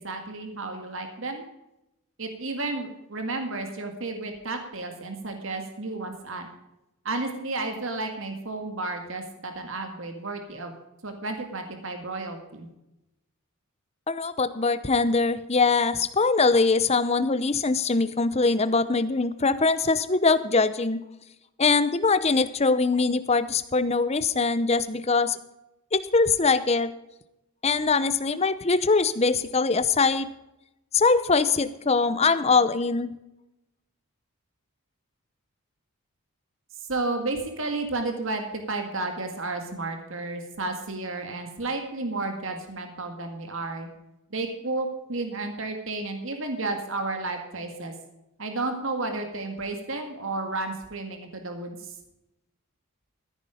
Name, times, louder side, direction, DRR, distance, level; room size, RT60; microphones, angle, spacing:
voice 1, 0.0-1.4 2.2-6.5 7.1-10.7 11.0-12.7 36.9-43.9 44.3-47.9 48.4-51.8, right 2 dB, 60° right, 5 dB, 1.9 m, -32 dB
voice 2, 14.1-21.0 21.6-25.4 25.9-26.9 27.6-30.3 30.9-33.1, left 4 dB, 30° left, 13 dB, 0.7 m, -22 dB
14.5 x 9.8 x 5.0 m, 0.90 s
head